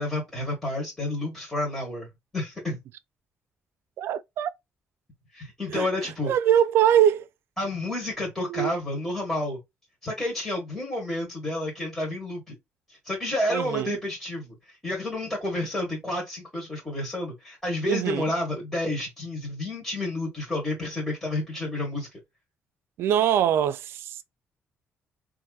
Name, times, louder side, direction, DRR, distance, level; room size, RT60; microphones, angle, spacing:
voice 1, 0.0-2.1 2.3-2.8 5.3-6.3 7.6-9.6 10.0-12.6 12.9-22.2, left 1 dB, 10° left, 1.3 m, -30 dB
voice 2, 4.0-4.5 5.7-5.9 6.3-7.3 8.5-8.7 13.5-13.9 17.9-18.3 23.0-24.2, right 10 dB, 70° right, 0.4 m, -23 dB
4.0 x 2.5 x 2.3 m
cardioid pair, 145°, 4 cm